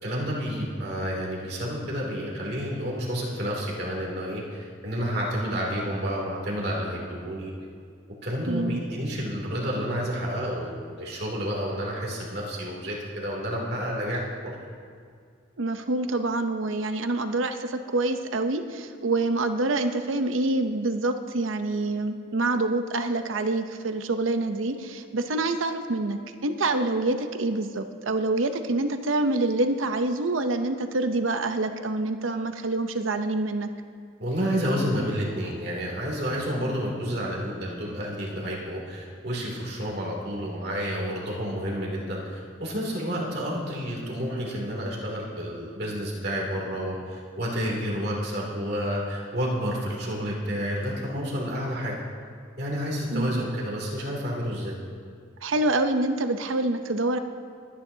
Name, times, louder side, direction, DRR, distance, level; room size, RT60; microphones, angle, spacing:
voice 1, 0.0-7.5 8.2-14.5 34.2-52.0 52.6-54.8, equal, 55° right, -3 dB, 2.8 m, -30 dB
voice 2, 8.5-8.8 15.6-33.7 53.1-53.4 55.4-57.2, right 2 dB, 90° right, 8 dB, 0.8 m, -26 dB
24.5 x 9.6 x 2.8 m, 2.2 s
head